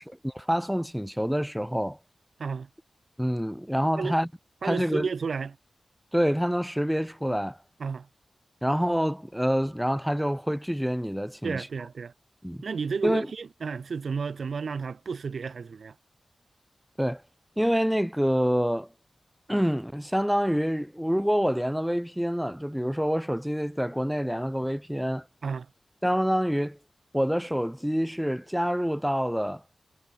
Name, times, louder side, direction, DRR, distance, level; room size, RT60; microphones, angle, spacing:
voice 1, 0.0-2.0 3.2-4.3 4.6-5.1 6.1-7.6 8.6-11.7 12.4-12.6 13.0-13.3 17.0-17.2 17.6-18.9 19.5-25.2 26.0-26.8 27.1-29.6, equal, 5° right, 7.4 m, -27 dB
voice 2, 4.6-5.6 7.8-8.1 11.4-12.1 12.6-15.9 25.4-25.7, right 5 dB, 80° right, 7.6 m, -32 dB
cardioid pair, 50°, 0 cm